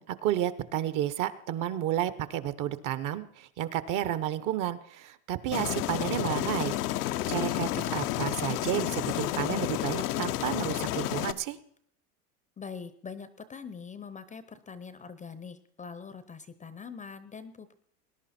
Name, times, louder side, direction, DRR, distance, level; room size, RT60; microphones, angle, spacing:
voice 1, 0.0-6.7 7.3-11.6, right 11 dB, 45° right, 14 dB, 1.0 m, -31 dB
Aircraft, 5.5-11.3, left 14 dB, 90° left, 0.9 m, -31 dB
voice 2, 12.6-17.7, left 5 dB, 15° left, 14 dB, 0.7 m, -43 dB
20.0 x 10.5 x 4.3 m, 0.68 s
supercardioid pair, 125°, 45 cm